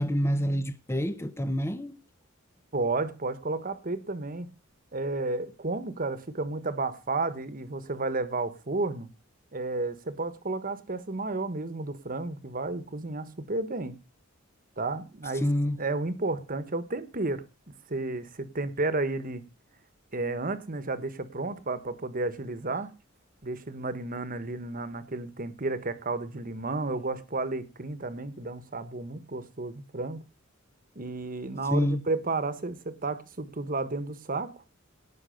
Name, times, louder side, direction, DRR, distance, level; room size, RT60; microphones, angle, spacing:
voice 1, 0.0-2.0 15.4-15.8 31.7-32.0, equal, 10° left, 0.9 m, -27 dB
voice 2, 2.7-4.5 4.9-9.1 9.5-14.0 14.8-15.4 15.8-17.4 17.9-19.4 20.1-22.9 23.4-30.2 30.9-34.5, right 3 dB, 40° right, 1.4 m, -32 dB
18.0 x 6.4 x 6.6 m
head